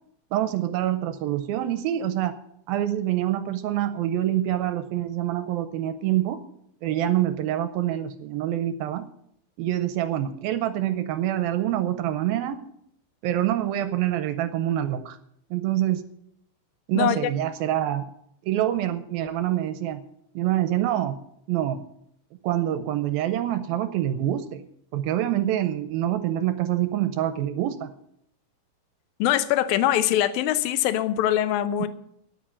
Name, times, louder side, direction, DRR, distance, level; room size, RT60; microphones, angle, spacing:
voice 1, 0.3-2.3 2.7-6.4 6.8-9.1 9.6-12.6 13.2-15.2 15.5-16.0 16.9-18.1 18.4-20.0 20.4-21.2 21.5-21.8 22.4-24.6 24.9-27.9, right 12 dB, 80° right, 10 dB, 2.4 m, -26 dB
voice 2, 17.0-17.3 29.2-31.9, left 12 dB, 75° left, 12 dB, 2.4 m, -23 dB
10.0 x 8.7 x 9.9 m, 0.72 s
omnidirectional pair, 4.6 m